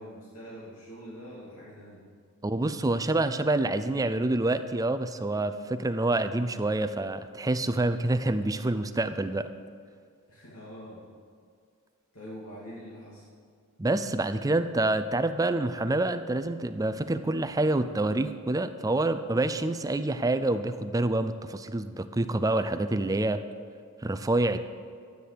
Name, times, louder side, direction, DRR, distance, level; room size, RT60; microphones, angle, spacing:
voice 1, 0.0-2.0 10.3-11.0 12.1-13.2, equal, 80° left, -7 dB, 2.6 m, -44 dB
voice 2, 2.4-9.5 13.8-23.4 24.0-24.6, right 2 dB, 15° right, 10 dB, 0.5 m, -27 dB
12.5 x 9.4 x 6.7 m, 2.2 s
head